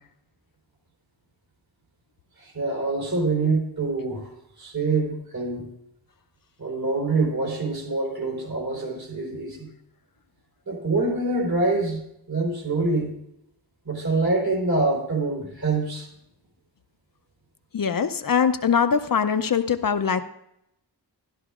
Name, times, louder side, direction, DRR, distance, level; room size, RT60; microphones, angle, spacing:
voice 1, 2.4-5.7 6.6-9.7 10.7-12.0 12.3-13.1 13.8-16.1, right 3 dB, 55° right, -1 dB, 3.7 m, -25 dB
voice 2, 17.7-20.2, left 7 dB, 55° left, 9 dB, 0.6 m, -22 dB
13.5 x 11.5 x 2.4 m, 0.79 s
wide cardioid pair, 95°, 42 cm